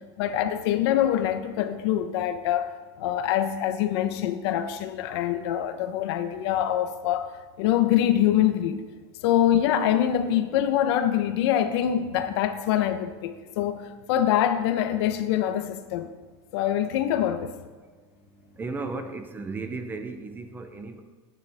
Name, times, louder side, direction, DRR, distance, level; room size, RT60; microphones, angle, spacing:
voice 1, 0.2-2.7 3.0-7.3 7.6-8.8 9.2-13.8 14.1-16.1 16.5-17.5, left 11 dB, 65° left, 9 dB, 0.9 m, -24 dB
voice 2, 18.3-21.0, right 3 dB, 15° right, 8 dB, 0.6 m, -35 dB
12.5 x 9.6 x 3.5 m, 1.4 s
supercardioid pair, 155°, 15 cm